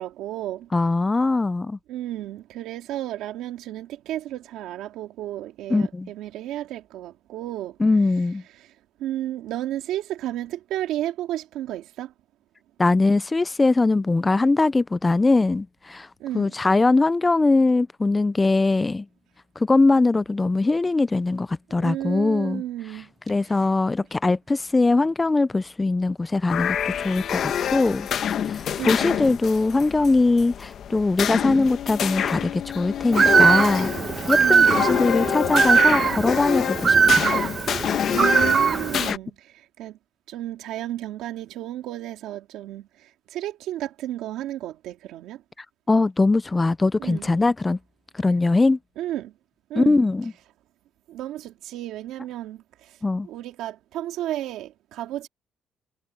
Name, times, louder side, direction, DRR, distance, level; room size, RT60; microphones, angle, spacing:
voice 1, 0.0-0.7 1.9-7.7 8.6-8.7 9.0-12.1 16.2-16.5 21.8-23.1 28.8-29.2 34.4-35.4 37.0-37.3 38.1-39.3 39.8-39.9 40.3-42.9 43.3-45.4 47.0-47.3 49.0-49.3 49.7-50.0 51.1-52.6 53.2-55.3, right 13 dB, 90° right, 2.2 m, -32 dB
voice 2, 0.7-1.8 5.7-6.1 7.8-8.4 12.8-16.1 16.3-19.1 19.6-28.1 28.5-33.9 34.3-37.2 45.9-47.8 48.1-48.8 49.7-50.3 53.0-53.3, left 3 dB, 20° left, 0.4 m, -21 dB
sound 1, 26.5-39.2, left 9 dB, 60° left, 1.0 m, -27 dB
Bowed string instrument, 31.4-36.9, left 11 dB, 75° left, 2.5 m, -36 dB
Bird, 33.1-39.1, right 6 dB, 40° right, 0.9 m, -20 dB
cardioid pair, 110°, 0 cm